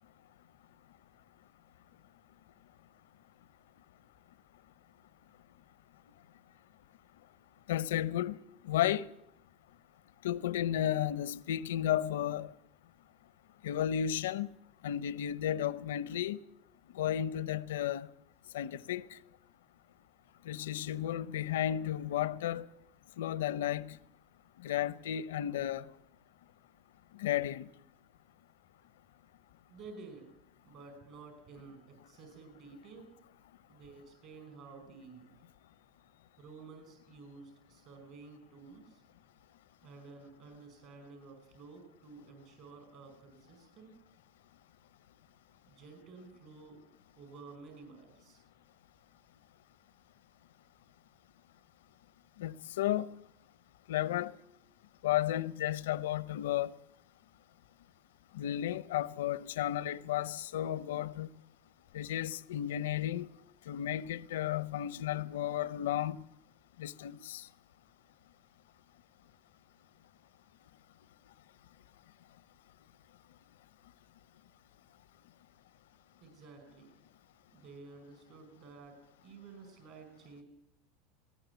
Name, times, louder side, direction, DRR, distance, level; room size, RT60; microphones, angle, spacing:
voice 1, 7.7-8.4 8.6-9.1 10.2-12.5 13.6-14.5 14.8-16.4 16.9-18.1 18.5-19.2 20.5-22.7 23.2-24.0 24.6-25.9 27.2-27.7 52.4-53.1 53.9-54.3 55.0-56.7 58.3-61.3 61.9-63.3 63.7-66.2 66.8-67.5, left 11 dB, 90° left, 0.7 m, -33 dB
voice 2, 29.7-33.1 33.7-35.4 36.4-39.0 39.8-44.0 45.7-46.8 47.1-48.4 76.2-76.9 77.5-80.4, right 4 dB, 50° right, 5.1 m, -52 dB
19.0 x 18.5 x 8.1 m
supercardioid pair, 130°, 0 cm